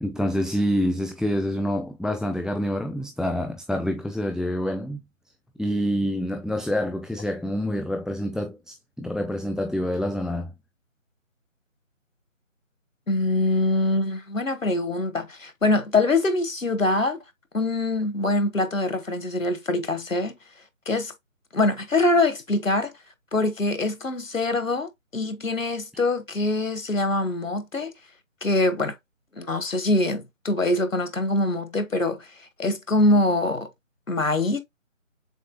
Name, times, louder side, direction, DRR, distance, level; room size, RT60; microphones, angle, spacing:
voice 1, 0.0-5.0 5.6-10.5, equal, ahead, 0.3 m, -27 dB
voice 2, 13.1-17.2 17.5-20.4 20.9-21.1 21.5-22.9 23.3-27.9 28.4-29.0 29.4-32.3 32.6-33.7 34.1-34.6, left 2 dB, 75° left, 1.2 m, -24 dB
6.8 x 2.6 x 2.2 m
figure-of-eight pair, 165°, 40 cm